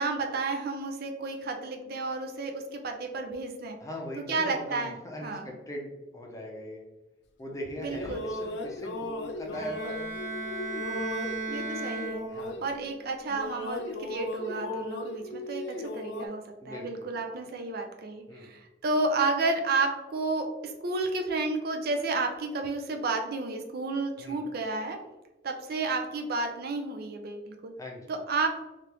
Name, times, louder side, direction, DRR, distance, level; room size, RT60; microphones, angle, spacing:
voice 1, 0.0-3.8 4.2-4.9 5.2-5.5 7.8-8.2 11.5-12.3 12.6-25.0 25.4-27.7 28.1-28.5, right 3 dB, 55° right, 4 dB, 0.5 m, -31 dB
voice 2, 3.8-6.8 7.4-10.1 12.3-12.6 16.6-17.2 18.3-18.5 24.2-24.4 27.8-28.1, left 1 dB, 20° left, 0 dB, 0.6 m, -40 dB
sound 1, 7.6-13.0 13.3-16.3, left 2 dB, 70° left, 0.4 m, -37 dB
Bowed string instrument, 9.5-12.7, right 3 dB, 20° right, 1.1 m, -36 dB
3.3 x 2.4 x 2.9 m, 1.0 s
head